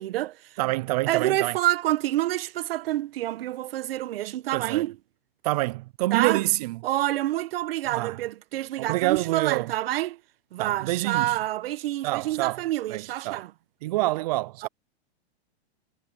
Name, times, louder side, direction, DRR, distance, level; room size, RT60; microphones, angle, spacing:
voice 1, 0.0-0.6 1.1-4.9 6.1-6.4 6.8-10.2 10.5-13.5 14.6-14.7, right 15 dB, 60° right, 1.2 m, -27 dB
voice 2, 0.6-1.6 4.5-4.8 5.4-6.8 7.9-8.2 8.8-9.7 10.6-11.4 12.0-12.6 12.9-13.4 13.8-14.7, right 19 dB, 40° right, 0.4 m, -27 dB
hypercardioid pair, 145°, 33 cm